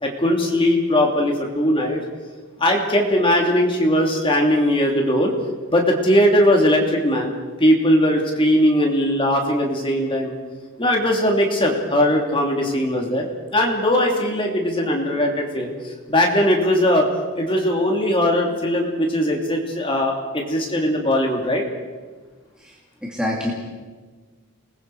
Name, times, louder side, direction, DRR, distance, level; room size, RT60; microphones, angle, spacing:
voice 1, 0.0-2.0 2.6-5.3 5.7-7.3 7.6-10.3 10.8-17.1 17.4-21.6, equal, 25° left, 1 dB, 2.9 m, -19 dB
voice 2, 22.6-23.5, left 1 dB, 5° right, -4 dB, 2.6 m, -27 dB
28.5 x 20.5 x 4.9 m, 1.4 s
head